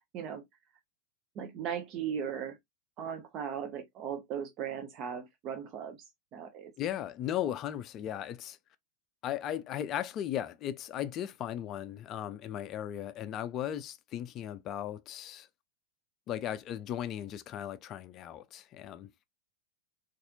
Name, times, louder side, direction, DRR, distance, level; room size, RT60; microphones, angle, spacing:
voice 1, 1.4-2.6 3.0-6.7, right 8 dB, 35° right, 0.5 m, -38 dB
voice 2, 6.8-8.6 9.2-15.5 16.3-19.1, left 11 dB, 35° left, 0.4 m, -37 dB
4.0 x 2.5 x 2.6 m
figure-of-eight pair, 90°, 0 cm